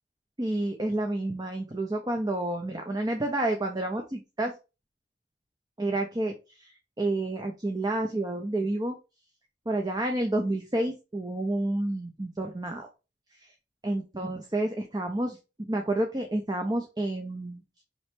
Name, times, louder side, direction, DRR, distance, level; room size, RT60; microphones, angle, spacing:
voice 1, 0.4-4.5 5.8-6.7 7.0-8.9 9.7-12.8 13.8-17.8, right 1 dB, 20° right, 3 dB, 0.7 m, -29 dB
5.3 x 3.2 x 3.0 m, 0.28 s
head